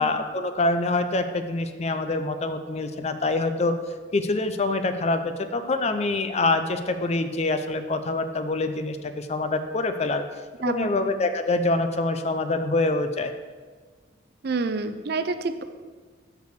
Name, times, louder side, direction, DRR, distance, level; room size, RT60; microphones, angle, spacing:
voice 1, 0.0-3.8 4.1-10.2 10.6-13.3, left 2 dB, 35° left, 9 dB, 0.5 m, -25 dB
voice 2, 14.4-15.6, right 3 dB, 55° right, 10 dB, 0.4 m, -27 dB
6.1 x 5.5 x 6.6 m, 1.5 s
head